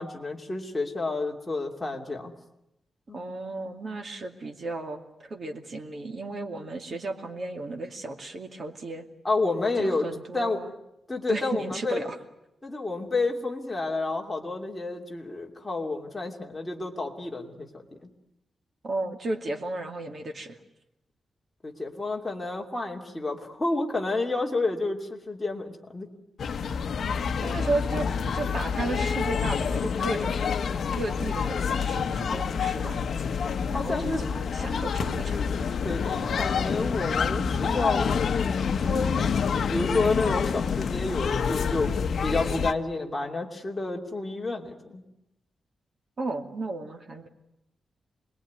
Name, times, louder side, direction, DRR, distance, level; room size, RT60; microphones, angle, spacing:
voice 1, 0.0-2.3 3.1-3.3 9.2-10.1 10.3-10.6 11.1-12.1 12.6-18.1 21.6-26.1 33.7-34.2 35.8-38.2 38.6-45.0, left 3 dB, 15° left, 0 dB, 2.9 m, -30 dB
voice 2, 3.1-9.0 9.8-10.7 11.3-12.2 18.8-20.6 27.4-28.1 28.3-30.5 30.9-33.1 33.7-35.4 46.2-47.3, right 2 dB, 40° right, 4 dB, 2.5 m, -34 dB
sound 1, 26.4-42.7, left 6 dB, 60° left, 1.0 m, -27 dB
26.5 x 21.0 x 9.6 m, 0.88 s
wide cardioid pair, 170°, 0 cm